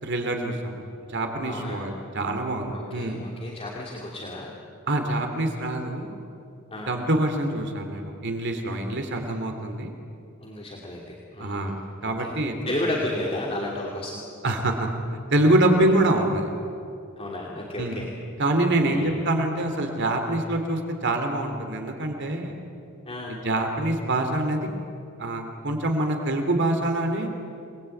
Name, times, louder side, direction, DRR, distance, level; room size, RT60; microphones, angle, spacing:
voice 1, 0.0-0.8 1.1-3.2 4.9-6.2 6.9-9.9 11.4-12.9 14.4-14.9 15.3-16.5 17.8-18.0 18.4-22.6 23.3-24.7 25.2-27.3, right 1 dB, 55° right, 5 dB, 3.1 m, -25 dB
voice 2, 1.4-1.8 2.7-4.5 6.7-6.9 10.4-11.0 11.3-11.7 12.2-12.3 12.6-14.2 17.2-18.1 18.9-19.2 23.1-23.4, left 1 dB, 25° left, -3 dB, 2.9 m, -32 dB
28.5 x 20.5 x 9.2 m, 2.7 s
head